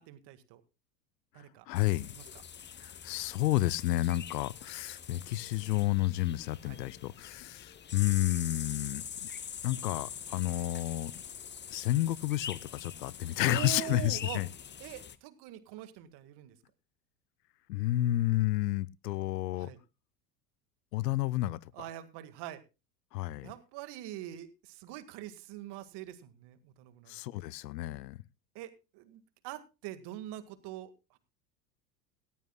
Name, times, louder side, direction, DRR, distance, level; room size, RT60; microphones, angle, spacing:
voice 1, 0.1-0.6 1.3-1.7 2.1-2.4 6.6-6.8 13.4-14.4 14.8-16.6 19.6-19.8 21.7-22.6 23.4-27.1 28.6-31.2, right 13 dB, 55° right, 1.9 m, -44 dB
voice 2, 1.7-2.1 2.8-9.0 9.6-11.1 11.7-14.5 17.7-19.7 20.9-21.6 23.1-23.5 27.1-28.2, left 16 dB, 75° left, 0.7 m, -31 dB
sound 1, 1.8-15.2, left 8 dB, 20° left, 0.9 m, -44 dB
18.0 x 14.0 x 2.3 m
hypercardioid pair, 80°, 50 cm